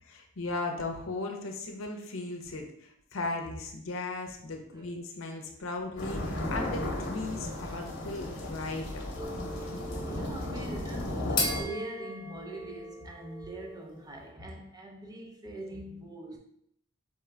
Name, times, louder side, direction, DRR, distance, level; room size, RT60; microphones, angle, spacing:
voice 1, 0.0-9.0, left 2 dB, 70° left, 0.7 m, -37 dB
sound 1, 6.0-11.6, left 1 dB, 55° left, 1.0 m, -35 dB
sound 2, 9.2-14.0, left 2 dB, 20° left, 0.9 m, -37 dB
voice 2, 10.0-16.4, right 1 dB, 20° right, 0.7 m, -43 dB
4.2 x 3.7 x 3.3 m
head